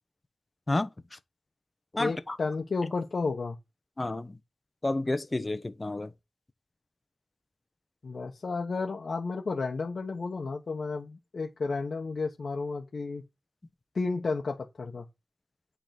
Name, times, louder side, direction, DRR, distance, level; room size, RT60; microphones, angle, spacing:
voice 1, 0.7-1.2 1.9-2.4 4.0-4.4 4.8-6.1, left 2 dB, 30° left, 1.0 m, -31 dB
voice 2, 2.0-3.6 8.0-13.2 13.9-15.0, left 4 dB, 70° left, 1.2 m, -32 dB
9.3 x 4.0 x 6.0 m
wide cardioid pair, 60°, 0 cm